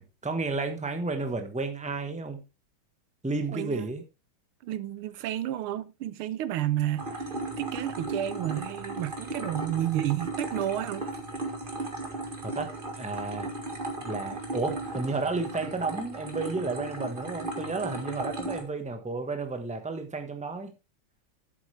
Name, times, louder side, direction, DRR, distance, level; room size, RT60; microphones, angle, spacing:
voice 1, 0.0-2.4 3.2-4.0 12.4-12.7 13.0-13.5 14.0-20.7, right 3 dB, 5° right, 0.8 m, -32 dB
voice 2, 3.5-3.9 4.6-7.3 7.6-11.1, right 12 dB, 85° right, 1.6 m, -31 dB
sound 1, 7.0-18.6, right 2 dB, 25° right, 1.8 m, -36 dB
11.0 x 8.4 x 3.3 m
omnidirectional pair, 2.3 m